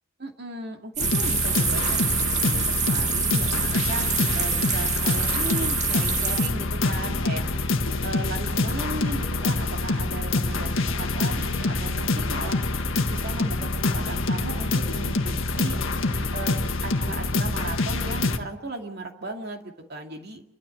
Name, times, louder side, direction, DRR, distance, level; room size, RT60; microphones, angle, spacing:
voice 1, 0.2-7.5 8.0-12.6 13.1-15.8 16.3-20.4, right 2 dB, 50° right, 3 dB, 2.4 m, -36 dB
sound 1, 1.0-18.4, left 3 dB, 70° left, 1.6 m, -26 dB
sound 2, 1.0-6.5, right 7 dB, 35° right, 1.8 m, -26 dB
sound 3, 6.0-17.4, equal, 15° right, 5.6 m, -45 dB
28.5 x 13.0 x 7.7 m, 0.80 s
head